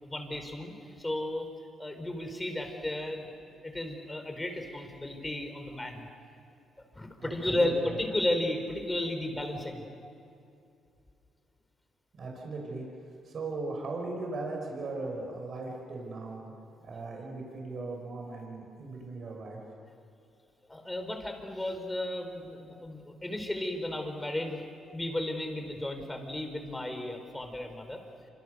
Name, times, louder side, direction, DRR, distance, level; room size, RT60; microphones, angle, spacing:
voice 1, 0.0-1.5 1.8-6.1 6.9-9.8 20.7-28.0, left 1 dB, 15° left, 5 dB, 4.4 m, -34 dB
voice 2, 7.2-8.0 12.1-12.8 13.2-16.5 16.8-19.6, right 3 dB, 50° right, 0 dB, 6.0 m, -38 dB
27.5 x 26.0 x 6.8 m, 2.6 s
cardioid pair, 90°, 0 cm